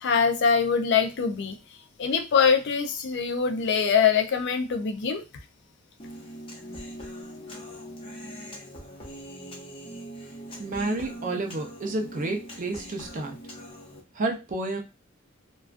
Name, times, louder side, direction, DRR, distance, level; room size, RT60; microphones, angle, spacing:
voice 1, 0.0-1.6 2.0-5.2, left 6 dB, 60° left, 6 dB, 0.4 m, -23 dB
Human voice, 6.0-14.0, equal, 25° left, 0.7 m, -41 dB
voice 2, 10.6-13.4 14.2-14.8, right 2 dB, 40° right, 3 dB, 0.5 m, -30 dB
2.3 x 2.2 x 2.4 m, 0.26 s
head